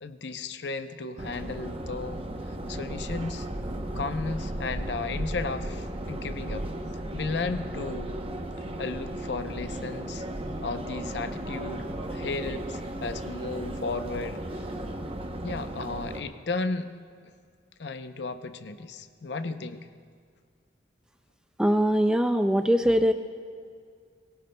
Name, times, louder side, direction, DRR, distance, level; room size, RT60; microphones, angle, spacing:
voice 1, 0.0-2.2 2.7-3.5 4.0-6.6 7.1-8.1 8.8-10.3 10.6-14.4 15.4-16.9 17.8-19.9, left 3 dB, 65° left, 9 dB, 0.6 m, -34 dB
Subway metro underground, 1.2-16.2, right 1 dB, 30° right, 0.8 m, -35 dB
voice 2, 21.6-23.1, equal, 5° right, 8 dB, 0.4 m, -22 dB
22.5 x 17.0 x 2.2 m, 2.1 s
head